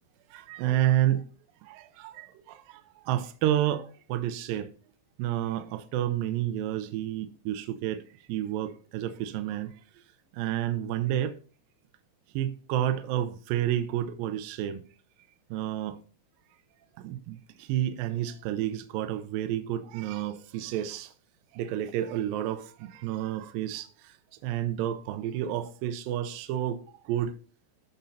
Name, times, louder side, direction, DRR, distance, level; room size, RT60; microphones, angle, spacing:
voice 1, 0.3-1.2 1.7-2.3 3.1-4.7 5.2-8.0 8.3-9.7 10.4-11.3 12.4-14.8 15.5-16.0 17.0-17.4 17.7-21.1 21.6-23.9 24.4-26.8 27.1-27.3, right 12 dB, 85° right, 2.0 m, -30 dB
14.5 x 5.4 x 2.7 m
omnidirectional pair, 4.8 m